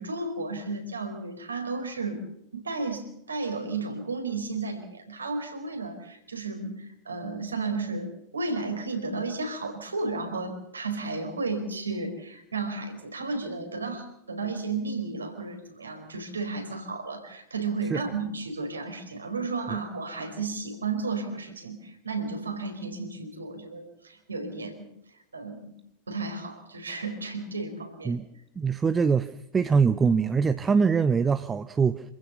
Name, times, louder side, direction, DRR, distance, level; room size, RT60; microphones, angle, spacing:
voice 1, 0.0-2.2 2.5-24.9 25.3-25.7 26.1-28.2, right 3 dB, 75° right, 5 dB, 4.5 m, -33 dB
voice 2, 28.6-32.0, right 5 dB, 15° right, 12 dB, 0.8 m, -23 dB
27.0 x 15.5 x 6.9 m, 0.82 s
figure-of-eight pair, 90°, 0 cm